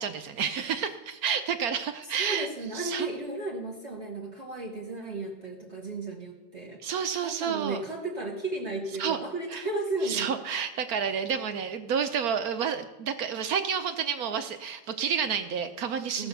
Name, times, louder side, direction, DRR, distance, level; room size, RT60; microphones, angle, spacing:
voice 1, 0.0-2.5 2.7-3.1 6.8-7.8 9.0-9.2 9.5-9.6 10.0-16.3, right 7 dB, 65° right, 9 dB, 0.9 m, -30 dB
voice 2, 2.1-6.8 7.2-10.3 16.2-16.3, right 2 dB, 35° right, -1 dB, 1.6 m, -34 dB
16.0 x 5.9 x 6.8 m, 1.1 s
omnidirectional pair, 2.2 m